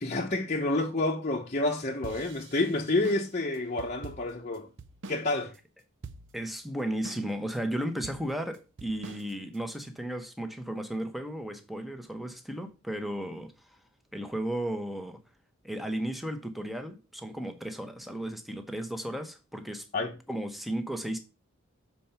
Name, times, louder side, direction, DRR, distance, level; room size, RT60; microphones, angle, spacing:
voice 1, 0.0-4.7 5.1-5.5 19.9-20.2, left 2 dB, 35° left, 0.9 m, -29 dB
sound 1, 2.0-5.3 5.5-5.6 6.0-6.6 7.0-7.6 8.0-9.8, right 3 dB, 60° right, 0.6 m, -45 dB
voice 2, 6.3-13.8 14.1-15.2 15.6-19.9 20.3-21.2, right 1 dB, ahead, 1.0 m, -34 dB
7.2 x 4.5 x 5.7 m
head